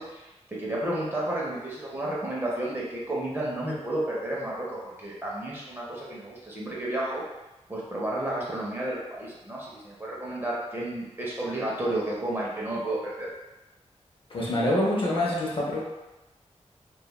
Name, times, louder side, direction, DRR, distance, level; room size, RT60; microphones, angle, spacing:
voice 1, 0.0-7.2 7.7-13.3, right 1 dB, 20° right, -6 dB, 0.6 m, -32 dB
voice 2, 14.3-15.8, left 1 dB, 45° left, -5 dB, 0.6 m, -25 dB
2.2 x 2.1 x 3.0 m, 1.0 s
wide cardioid pair, 120°, 12 cm